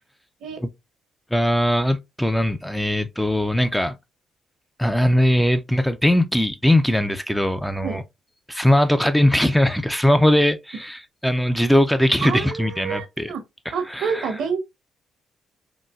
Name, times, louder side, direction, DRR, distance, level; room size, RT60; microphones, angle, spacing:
voice 1, 1.3-3.9 4.8-8.0 8.5-13.3 13.7-14.3, left 1 dB, 5° left, 0.4 m, -20 dB
voice 2, 12.2-13.4 13.7-14.6, right 6 dB, 75° right, 0.8 m, -28 dB
3.8 x 2.1 x 2.4 m
cardioid pair, 90°, 0 cm